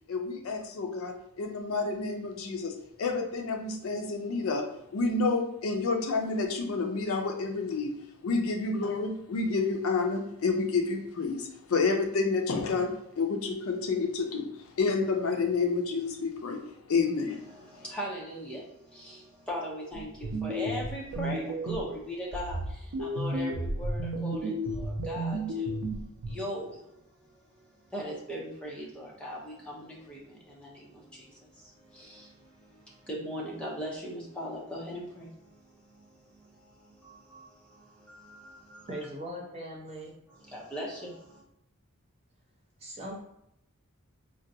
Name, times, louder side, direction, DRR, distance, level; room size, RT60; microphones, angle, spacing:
voice 1, 0.1-8.0 8.2-16.6 16.9-17.4, left 4 dB, 65° left, 4 dB, 0.4 m, -29 dB
voice 2, 17.6-25.8 26.3-26.8 27.9-31.3 31.9-32.8 33.1-35.3 37.0-37.5 38.0-38.9 40.5-41.4, equal, 5° left, -4 dB, 0.6 m, -39 dB
sound 1, 19.9-21.9 22.3-26.3, right 1 dB, 80° right, 0.5 m, -33 dB
voice 3, 38.9-40.1 42.8-43.2, equal, 30° right, -3 dB, 0.7 m, -39 dB
3.9 x 2.1 x 2.6 m, 0.81 s
head